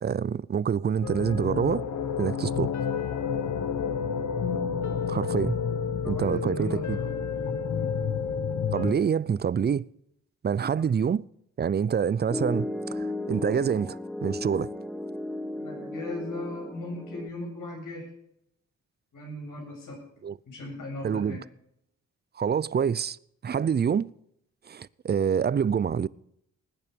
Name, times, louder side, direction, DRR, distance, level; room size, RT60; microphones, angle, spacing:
voice 1, 0.0-1.8 2.2-2.7 5.1-5.5 6.1-7.0 8.7-9.9 10.4-11.2 11.6-14.7 20.2-20.3 21.0-21.4 22.4-23.2 23.4-24.1 24.7-26.1, right 7 dB, 35° right, 0.4 m, -26 dB
sound 1, 1.0-8.9, left 6 dB, 70° left, 1.1 m, -30 dB
voice 2, 6.0-7.2 10.7-10.9 15.5-18.1 19.1-20.0 20.5-21.4, left 1 dB, 90° left, 7.8 m, -38 dB
Piano, 12.3-17.3, left 2 dB, ahead, 1.0 m, -35 dB
19.5 x 9.8 x 5.2 m
cardioid pair, 85°, 31 cm